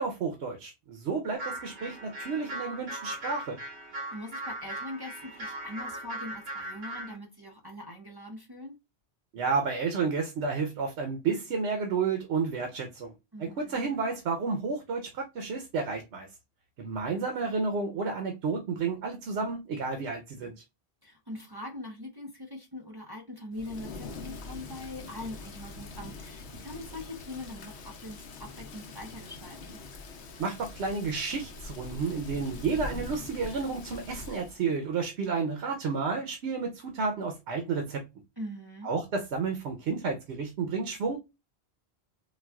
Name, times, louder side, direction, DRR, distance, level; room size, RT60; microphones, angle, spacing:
voice 1, 0.0-3.6 9.3-13.1 13.4-16.3 16.8-20.5 30.4-38.0 38.8-41.2, right 4 dB, 90° right, 0.9 m, -31 dB
sound 1, 1.3-7.2, right 1 dB, 70° right, 1.2 m, -39 dB
voice 2, 3.9-8.8 13.3-13.9 21.0-29.8 38.4-38.9, left 1 dB, 25° right, 0.7 m, -42 dB
Thunder / Rain, 23.5-34.6, left 3 dB, 80° left, 0.9 m, -43 dB
4.0 x 2.3 x 2.2 m
omnidirectional pair, 1.1 m